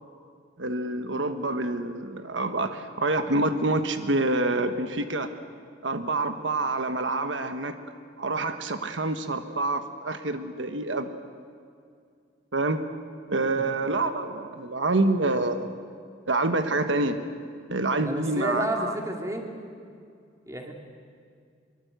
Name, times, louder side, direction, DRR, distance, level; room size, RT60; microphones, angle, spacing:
voice 1, 0.6-5.3 5.8-7.7 8.2-11.1 12.5-12.8 13.3-15.7 16.3-17.2 17.7-19.0, right 2 dB, 80° right, 8 dB, 1.3 m, -27 dB
voice 2, 18.0-19.5 20.5-20.7, right 1 dB, 15° right, 2 dB, 2.6 m, -31 dB
24.0 x 23.0 x 8.1 m, 2.3 s
head